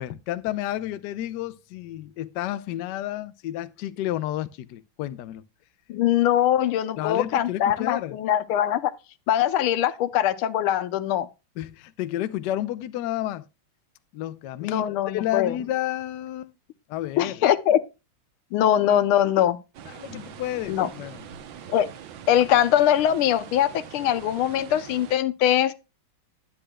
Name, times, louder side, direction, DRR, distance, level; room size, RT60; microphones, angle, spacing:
voice 1, 0.0-5.4 7.0-8.2 11.6-13.5 14.1-16.5 16.9-17.4 19.9-21.2, left 13 dB, 75° left, 1.0 m, -31 dB
voice 2, 5.9-8.9 9.3-11.3 14.6-15.5 17.2-17.8 18.5-19.6 20.7-20.9 21.7-21.9 22.3-25.7, left 11 dB, 90° left, 1.6 m, -22 dB
sound 1, 19.7-25.2, right 9 dB, 70° right, 1.5 m, -43 dB
11.5 x 8.7 x 2.2 m
omnidirectional pair, 2.3 m